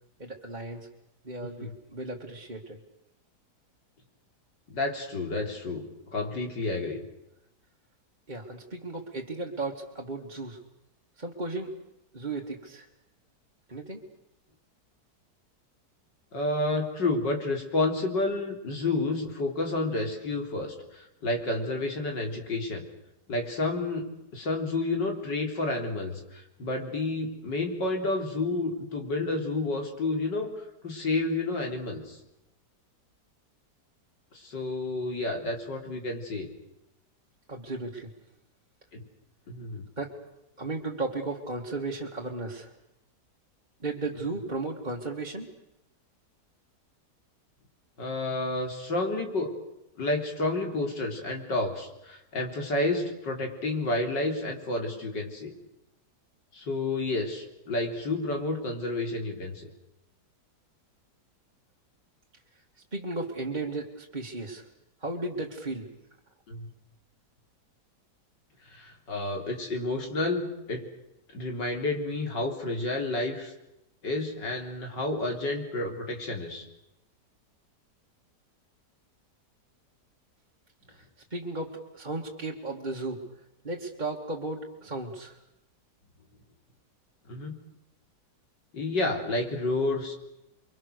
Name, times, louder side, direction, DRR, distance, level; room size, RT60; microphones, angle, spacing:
voice 1, 0.2-0.9 1.2-2.8 8.3-10.6 11.2-11.7 12.1-12.9 13.7-14.0 37.5-38.1 40.0-40.1 40.6-42.7 43.8-45.5 62.9-64.7 65.0-65.9 80.9-83.2 83.6-85.4, right 2 dB, 25° right, -1 dB, 2.1 m, -35 dB
voice 2, 4.7-7.0 16.3-22.8 23.3-24.0 24.3-32.2 34.3-36.5 38.9-39.0 39.5-39.8 48.0-49.5 50.0-55.6 56.5-59.7 66.5-66.7 68.6-70.8 71.3-73.5 74.0-76.7 87.3-87.6 88.7-90.1, left 2 dB, 90° left, 3 dB, 4.3 m, -30 dB
29.5 x 23.5 x 6.7 m, 0.88 s
omnidirectional pair, 1.9 m